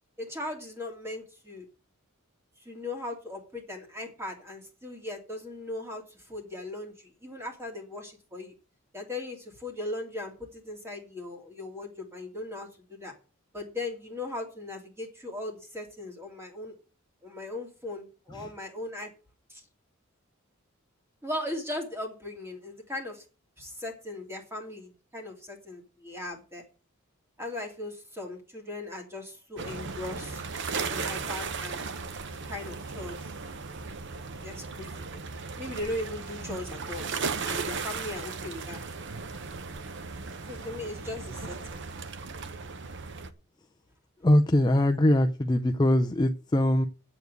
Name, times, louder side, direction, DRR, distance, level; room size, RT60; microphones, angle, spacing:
voice 1, 0.2-1.6 2.6-8.5 8.9-13.1 13.5-16.7 17.2-19.1 19.5-19.6 21.2-23.2 23.6-26.6 27.4-30.4 30.9-31.8 32.5-33.3 34.4-34.9 35.1-35.2 35.6-37.0 37.4-38.8 40.5-41.8, left 2 dB, 10° right, 2.8 m, -38 dB
sound 1, 29.6-43.3, right 4 dB, 55° right, 0.9 m, -36 dB
voice 2, 44.2-46.9, left 1 dB, 20° left, 0.5 m, -22 dB
8.0 x 7.2 x 8.0 m
head